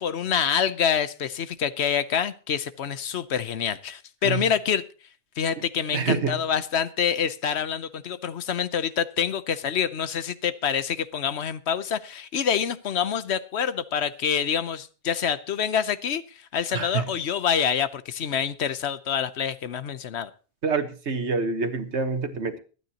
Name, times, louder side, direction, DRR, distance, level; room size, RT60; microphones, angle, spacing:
voice 1, 0.0-4.8 5.4-20.3, left 8 dB, 70° left, 14 dB, 1.1 m, -26 dB
voice 2, 5.9-6.4 16.7-17.0 20.6-22.6, right 4 dB, 75° right, 8 dB, 1.6 m, -26 dB
24.5 x 9.4 x 2.9 m, 0.36 s
omnidirectional pair, 1.2 m